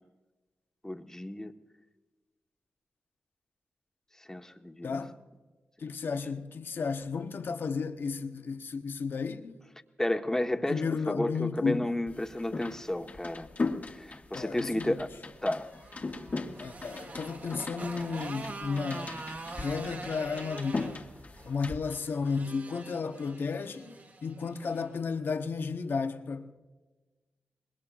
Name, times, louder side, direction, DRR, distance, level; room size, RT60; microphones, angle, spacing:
voice 1, 0.8-1.5 4.3-5.0 10.0-13.5 13.9-15.1 15.4-15.7, left 1 dB, 15° left, 1.3 m, -32 dB
voice 2, 4.8-5.1 5.8-9.6 10.7-11.9 14.3-15.0 16.6-19.3 19.5-21.0 21.5-26.5, left 5 dB, 65° left, 1.1 m, -33 dB
sound 1, 12.1-21.8, left 3 dB, 45° left, 1.6 m, -39 dB
Motorcycle, 15.6-24.9, right 3 dB, 55° right, 2.3 m, -44 dB
25.0 x 21.0 x 2.5 m
cardioid pair, 60°, 4 cm